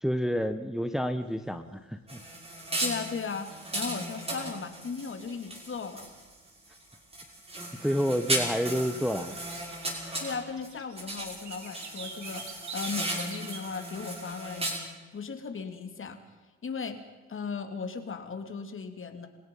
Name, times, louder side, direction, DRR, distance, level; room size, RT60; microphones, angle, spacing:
voice 1, 0.0-2.2 7.8-9.4, equal, ahead, 8 dB, 1.2 m, -29 dB
sound 1, 1.3-1.4 1.7-2.0 2.3-2.7 3.2-4.4 4.7-4.8 5.4-5.5 6.0-6.1 6.4-6.5 6.9-7.7 8.0-13.7 13.9-14.4, right 5 dB, 70° right, 3.8 m, -46 dB
sound 2, 2.1-6.3 6.7-10.7 11.0-14.8, right 1 dB, 20° right, 6.1 m, -36 dB
voice 2, 2.8-6.1 9.9-14.7 15.1-16.2 16.6-17.0 17.3-19.3, left 5 dB, 45° left, 7 dB, 2.9 m, -37 dB
29.5 x 17.0 x 5.6 m, 1.3 s
cardioid pair, 90°, 30 cm